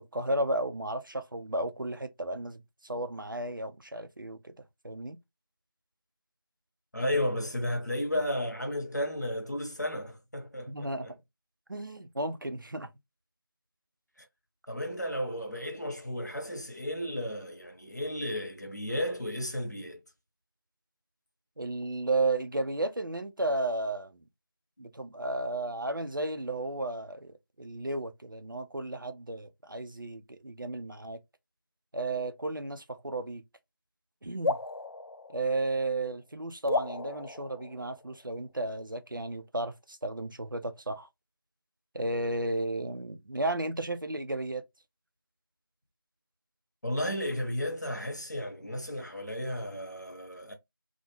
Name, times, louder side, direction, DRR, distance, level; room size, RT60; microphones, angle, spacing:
voice 1, 0.0-4.5 4.8-5.2 10.7-11.1 11.7-12.9 21.6-24.2 24.8-31.2 31.9-33.4 34.2-34.6 35.3-41.1 41.9-44.6, right 2 dB, 60° right, 0.4 m, -33 dB
voice 2, 6.9-11.1 14.2-14.3 14.7-20.0 46.8-50.5, left 1 dB, 50° left, 0.8 m, -33 dB
sound 1, 34.4-36.1 36.7-38.4, left 2 dB, 75° left, 0.4 m, -35 dB
2.3 x 2.1 x 3.0 m
figure-of-eight pair, 180°, 12 cm